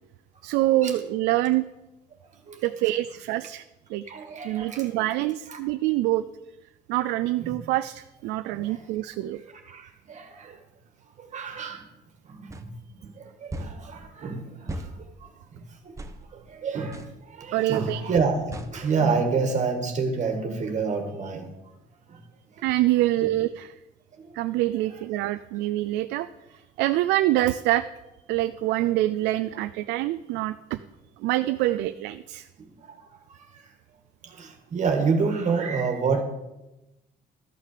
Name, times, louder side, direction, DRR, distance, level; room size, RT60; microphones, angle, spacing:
voice 1, 0.4-1.6 2.6-3.6 3.9-4.0 4.4-6.2 6.9-9.4 17.5-18.0 22.6-23.7 24.3-26.3 26.8-27.9 28.3-30.8 31.2-32.5, right 16 dB, 90° right, 11 dB, 0.4 m, -25 dB
voice 2, 2.3-2.9 4.1-5.1 5.5-5.6 7.4-7.6 8.5-8.9 9.3-10.6 11.2-11.9 12.2-21.5 22.1-22.2 22.5-22.7 23.2-23.3 24.1-24.4 24.9-25.0 32.6-33.7 34.2-36.2, right 5 dB, 45° right, 4 dB, 1.8 m, -29 dB
sound 1, 12.5-12.6 13.5-13.8 14.7-14.9 16.0-16.2 16.9-17.1 18.5-18.7, right 1 dB, 20° right, 1.1 m, -35 dB
13.0 x 6.4 x 6.7 m, 0.98 s
cardioid pair, 110°, 17 cm